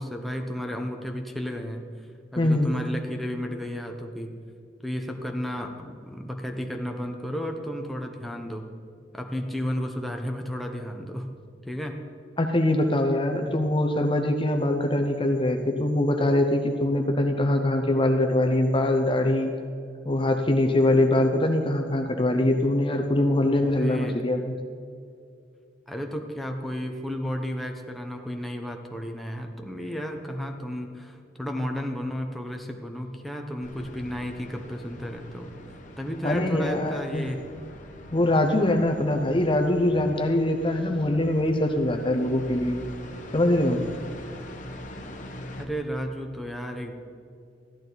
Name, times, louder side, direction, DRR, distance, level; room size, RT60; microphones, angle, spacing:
voice 1, 0.0-1.9 2.3-4.3 4.8-8.6 9.1-11.3 11.6-12.0 23.6-24.2 25.9-35.5 36.0-37.4 45.6-46.9, equal, ahead, 2 dB, 0.9 m, -33 dB
voice 2, 2.4-2.7 12.4-19.5 20.0-24.5 36.2-37.3 38.1-42.8 43.3-43.8, left 1 dB, 30° left, 4 dB, 0.8 m, -23 dB
sound 1, 33.6-45.7, left 1 dB, 45° left, 1.2 m, -43 dB
14.5 x 11.5 x 4.0 m, 2.3 s
head